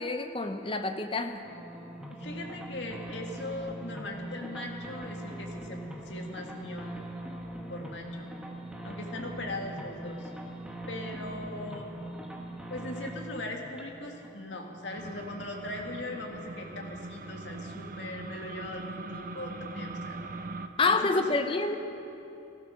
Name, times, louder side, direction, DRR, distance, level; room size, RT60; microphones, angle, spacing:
voice 1, 0.0-1.4 20.8-21.8, left 3 dB, 30° left, 7 dB, 0.8 m, -27 dB
sound 1, 1.4-15.6, right 1 dB, 5° right, 1.3 m, -42 dB
voice 2, 2.1-7.0 7.7-8.3 8.8-10.3 10.9-11.9 12.7-20.2 20.8-21.3, left 2 dB, 70° left, 1 dB, 2.0 m, -40 dB
sound 2, 14.9-20.7, right 2 dB, 50° right, 0.7 m, -41 dB
16.0 x 14.0 x 6.4 m, 2.9 s
head